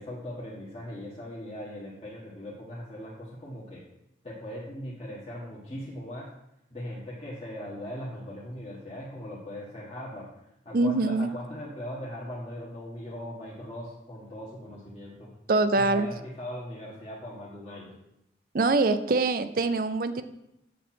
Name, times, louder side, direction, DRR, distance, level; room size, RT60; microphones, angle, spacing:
voice 1, 0.0-3.8 4.2-6.3 6.7-15.3 15.8-18.0, equal, 35° left, -6 dB, 1.6 m, -39 dB
voice 2, 10.7-11.3 15.5-16.1 18.5-20.2, right 3 dB, 50° right, 11 dB, 0.5 m, -24 dB
8.2 x 7.4 x 4.4 m, 0.84 s
head